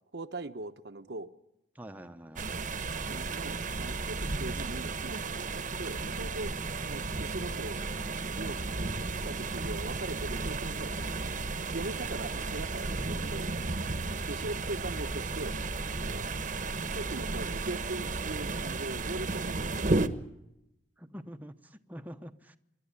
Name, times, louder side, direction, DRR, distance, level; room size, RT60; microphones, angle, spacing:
voice 1, 0.1-1.3 3.1-6.5 6.8-7.8 8.2-11.3 11.7-13.5 14.3-15.6 16.0-16.3 16.9-19.9, right 2 dB, 70° right, 9 dB, 1.0 m, -40 dB
voice 2, 1.7-2.5 21.0-22.6, equal, 10° right, 6 dB, 0.9 m, -46 dB
sound 1, 2.4-20.1, right 3 dB, 50° right, 1.1 m, -34 dB
27.0 x 11.5 x 9.9 m, 0.84 s
head